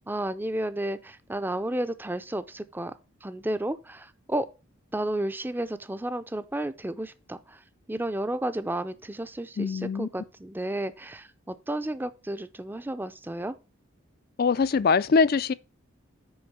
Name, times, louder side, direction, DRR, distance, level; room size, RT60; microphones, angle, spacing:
voice 1, 0.1-2.9 3.2-4.5 4.9-7.6 7.9-13.5, right 1 dB, 10° right, 0.5 m, -32 dB
voice 2, 9.6-10.1 14.4-15.5, left 5 dB, 45° left, 0.4 m, -23 dB
6.4 x 5.1 x 6.0 m
head